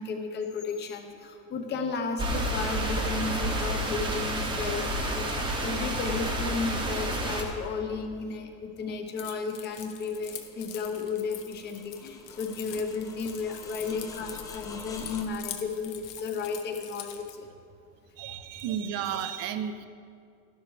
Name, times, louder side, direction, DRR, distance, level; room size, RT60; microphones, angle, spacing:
voice 1, 0.0-17.5, left 4 dB, 30° left, 5 dB, 0.9 m, -34 dB
sound 1, 2.2-7.4, right 1 dB, 15° right, 0.9 m, -30 dB
Keys jangling, 9.2-17.3, left 11 dB, 70° left, 1.0 m, -44 dB
sound 2, 9.6-15.3, left 3 dB, 10° left, 0.3 m, -47 dB
voice 2, 18.2-19.9, right 9 dB, 45° right, 11 dB, 0.6 m, -33 dB
13.0 x 11.5 x 3.2 m, 2.3 s
cardioid pair, 180°, 35 cm